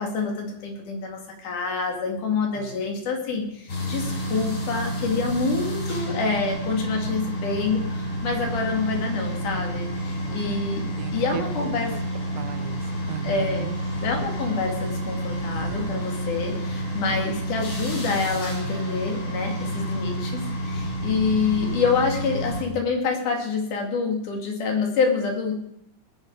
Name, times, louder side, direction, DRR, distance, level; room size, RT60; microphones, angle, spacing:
voice 1, 0.0-10.8 11.1-12.0 13.2-13.8 14.0-25.5, left 4 dB, 90° left, 1 dB, 3.9 m, -27 dB
sound 1, 3.7-22.6, right 1 dB, 50° left, 4.6 m, -29 dB
voice 2, 11.0-12.0 12.3-13.7, right 10 dB, 75° right, 8 dB, 2.4 m, -37 dB
19.0 x 9.7 x 4.7 m, 0.73 s
omnidirectional pair, 3.5 m